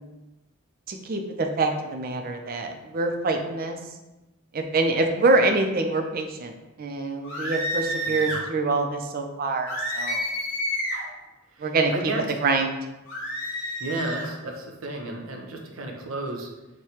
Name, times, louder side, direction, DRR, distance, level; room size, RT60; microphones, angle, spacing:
voice 1, 0.9-3.8 4.5-6.5 6.8-10.2 11.6-12.1 12.4-12.7, right 3 dB, 45° right, 4 dB, 0.4 m, -25 dB
sound 1, 7.2-8.4 9.7-11.1 13.1-14.3, equal, 60° left, 1.4 m, -29 dB
voice 2, 11.5-12.2 13.8-16.5, right 2 dB, 85° right, 2 dB, 0.7 m, -33 dB
6.3 x 2.2 x 2.9 m, 1.0 s
head